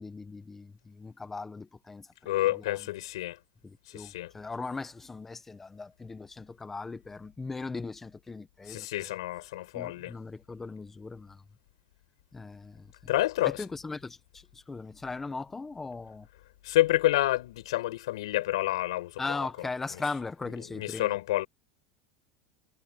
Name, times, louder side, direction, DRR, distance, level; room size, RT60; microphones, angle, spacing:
voice 1, 0.0-2.1 2.5-2.8 3.6-9.1 9.7-11.4 12.3-12.9 13.6-14.2 14.5-16.3 19.2-21.1, left 3 dB, 10° left, 1.2 m, -39 dB
voice 2, 2.2-3.4 3.9-4.3 8.7-10.1 13.1-13.6 16.6-19.2 19.6-20.0 20.7-21.5, left 16 dB, 85° left, 6.5 m, -29 dB
supercardioid pair, 165°, 3 cm